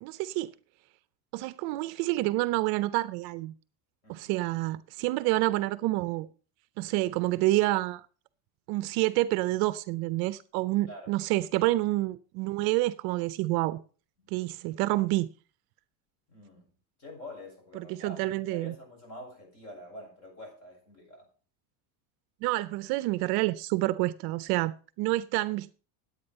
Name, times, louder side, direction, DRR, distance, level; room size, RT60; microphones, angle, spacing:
voice 1, 0.0-0.5 1.3-3.5 4.1-6.3 6.8-8.0 8.7-13.8 14.3-15.3 17.7-18.7 22.4-25.7, right 18 dB, 55° right, 0.6 m, -28 dB
voice 2, 16.3-16.7 17.0-21.3, left 1 dB, 35° left, 7.0 m, -46 dB
10.5 x 8.7 x 5.4 m
cardioid pair, 155°, 45 cm